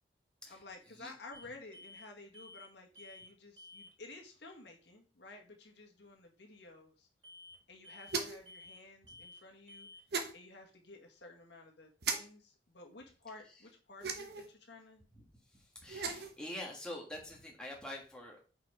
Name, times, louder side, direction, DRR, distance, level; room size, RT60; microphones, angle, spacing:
voice 1, 0.5-7.1 7.7-9.9 10.3-15.0, left 2 dB, 75° left, 2 dB, 1.6 m, -53 dB
sound 1, 1.3-1.5 1.7-2.1 2.3-2.7 2.9-3.3 3.6-3.9 7.2-7.6 7.8-8.2 8.5-8.8 9.1-9.4 9.7-10.0, left 2 dB, 25° right, 2.3 m, -53 dB
sound 2, 8.1-8.5 10.1-10.3 12.0-12.2 14.0-14.5 15.8-16.3, right 5 dB, 60° right, 1.1 m, -36 dB
voice 2, 15.5-18.5, left 1 dB, 5° left, -1 dB, 1.5 m, -46 dB
5.6 x 4.6 x 4.8 m, 0.36 s
head